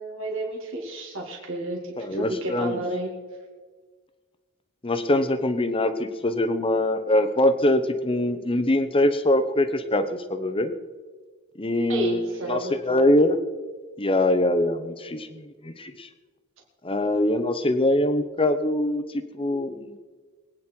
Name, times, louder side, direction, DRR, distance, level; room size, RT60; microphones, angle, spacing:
voice 1, 0.0-3.1 11.9-13.0, right 1 dB, 65° right, -2 dB, 2.5 m, -32 dB
voice 2, 2.0-2.8 4.8-10.7 11.6-13.4 14.0-16.1 16.8-20.0, left 1 dB, 25° left, 10 dB, 1.0 m, -23 dB
22.5 x 9.4 x 4.6 m, 1.4 s
head